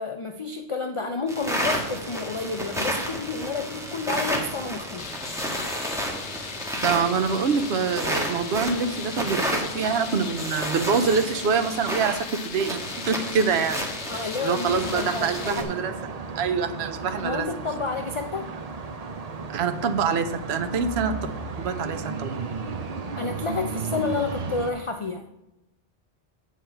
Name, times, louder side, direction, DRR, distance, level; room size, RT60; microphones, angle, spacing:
voice 1, 0.0-5.1 14.1-15.7 17.0-18.5 23.2-25.3, left 4 dB, 40° left, 5 dB, 0.5 m, -30 dB
sound 1, 1.3-15.6, equal, 5° right, 1.4 m, -31 dB
sound 2, 5.0-15.5, left 8 dB, 85° left, 0.9 m, -39 dB
voice 2, 6.8-13.8 14.4-17.5 19.5-21.3 21.6-22.4, right 5 dB, 70° right, 8 dB, 0.9 m, -25 dB
sound 3, 14.7-24.7, right 4 dB, 40° right, 0.7 m, -34 dB
8.2 x 7.4 x 4.5 m, 0.92 s
omnidirectional pair, 1.2 m